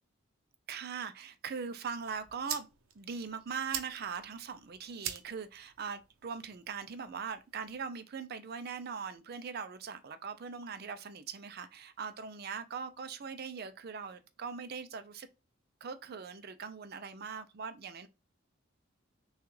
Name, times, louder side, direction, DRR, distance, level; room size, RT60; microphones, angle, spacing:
voice 1, 0.7-2.7 2.9-15.3 15.8-18.1, right 6 dB, 50° right, 0.5 m, -41 dB
sound 1, 1.8-7.8, right 9 dB, 85° right, 0.6 m, -45 dB
5.9 x 2.3 x 3.1 m
head